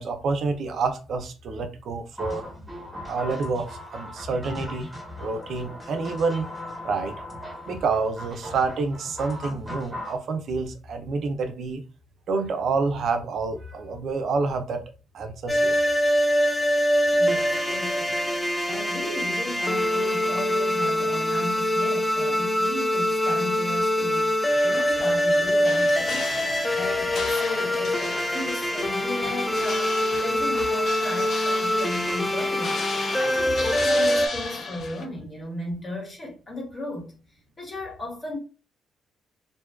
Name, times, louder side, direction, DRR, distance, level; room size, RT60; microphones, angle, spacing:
voice 1, 0.0-2.4 3.1-4.9 5.2-6.5 6.8-7.2 7.7-11.8 12.3-14.8 15.1-15.7, right 4 dB, 65° right, 0.4 m, -28 dB
sound 1, 2.2-10.2, left 1 dB, 10° right, 1.2 m, -38 dB
sound 2, 15.5-34.3, equal, 10° left, 0.4 m, -24 dB
voice 2, 17.1-24.3 24.6-37.1 37.6-38.4, left 1 dB, 30° left, 1.2 m, -35 dB
sound 3, 25.6-35.0, left 4 dB, 55° left, 0.6 m, -36 dB
2.5 x 2.2 x 2.3 m
cardioid pair, 90°, 0 cm